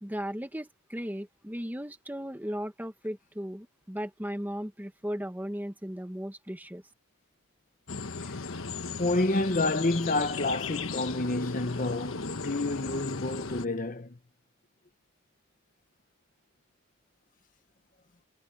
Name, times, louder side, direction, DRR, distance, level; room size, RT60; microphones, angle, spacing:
voice 1, 0.0-6.8, equal, 10° right, 1.4 m, -36 dB
sound 1, 7.9-13.7, left 4 dB, 85° left, 1.4 m, -36 dB
voice 2, 9.0-14.2, left 2 dB, 40° left, 1.0 m, -29 dB
head